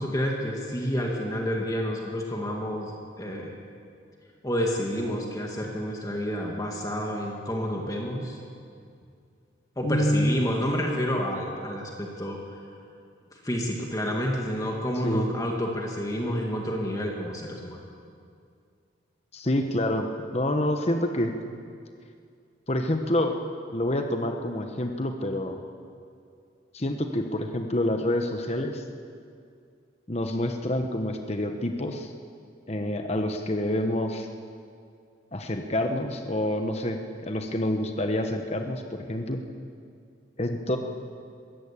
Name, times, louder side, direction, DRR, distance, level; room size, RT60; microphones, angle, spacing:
voice 1, 0.0-3.5 4.4-8.4 9.8-12.4 13.3-17.9, equal, 20° left, 0 dB, 2.0 m, -29 dB
voice 2, 9.8-10.4 15.0-15.3 19.3-20.1 20.3-21.3 22.7-23.4 23.7-25.6 26.7-28.8 30.1-32.1 32.7-34.3 35.3-37.0 37.3-39.4 40.4-40.8, left 1 dB, 35° left, 5 dB, 1.1 m, -27 dB
22.0 x 16.0 x 8.5 m, 2.3 s
head